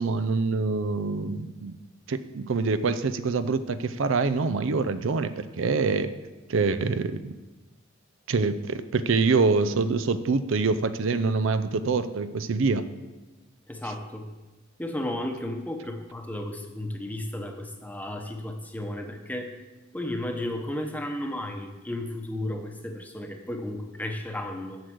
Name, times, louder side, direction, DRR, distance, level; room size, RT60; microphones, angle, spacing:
voice 1, 0.0-1.8 2.1-6.1 6.5-7.3 8.3-12.8, right 4 dB, 65° right, 11 dB, 0.5 m, -25 dB
voice 2, 13.7-14.3 14.8-19.5 19.9-24.8, left 1 dB, 5° left, 4 dB, 0.9 m, -33 dB
8.0 x 6.6 x 7.8 m, 1.2 s
head